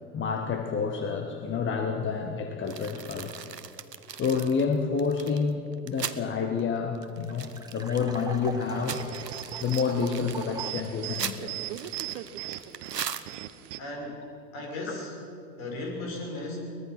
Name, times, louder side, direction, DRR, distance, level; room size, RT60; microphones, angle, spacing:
voice 1, 0.0-3.4 4.1-9.0 9.6-11.6, left 5 dB, 25° left, 5 dB, 1.5 m, -29 dB
sound 1, 2.7-6.2 6.6-6.7 7.0-8.2 8.6-13.7, right 7 dB, 90° right, 0.9 m, -39 dB
sound 2, 6.1-6.2 6.4-6.5 6.8-10.9, right 3 dB, 10° right, 2.0 m, -42 dB
sound 3, 8.6-13.8, right 14 dB, 50° right, 1.1 m, -39 dB
voice 2, 13.8-14.3 14.5-15.1 15.6-16.6, left 2 dB, 55° left, 1 dB, 6.4 m, -36 dB
23.0 x 19.5 x 5.9 m, 2.7 s
figure-of-eight pair, 85°, 48 cm